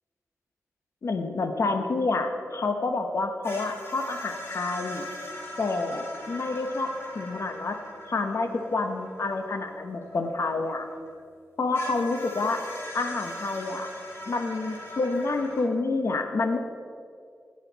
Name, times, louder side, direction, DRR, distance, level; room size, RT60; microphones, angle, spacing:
voice 1, 1.0-5.0 5.6-6.9 7.1-7.8 8.1-10.9 11.6-12.6 12.9-13.9 14.3-16.6, left 3 dB, 65° left, 6 dB, 0.9 m, -28 dB
sound 1, 3.4-11.1 11.7-15.6, left 1 dB, 50° left, 2.8 m, -40 dB
18.0 x 6.6 x 4.0 m, 2.2 s
wide cardioid pair, 70°, 5 cm